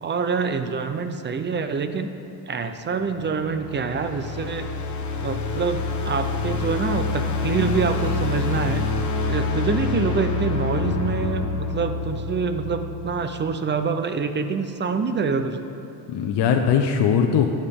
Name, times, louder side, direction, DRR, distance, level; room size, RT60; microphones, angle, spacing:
voice 1, 0.0-2.1 2.5-4.7 5.2-8.9 9.3-15.7, right 5 dB, 25° right, 8 dB, 0.6 m, -26 dB
sound 1, 3.0-13.2, left 4 dB, 45° left, 1.2 m, -27 dB
voice 2, 16.1-17.5, left 7 dB, 70° left, 4 dB, 0.8 m, -21 dB
14.5 x 8.8 x 3.6 m, 2.6 s
cardioid pair, 125°, 42 cm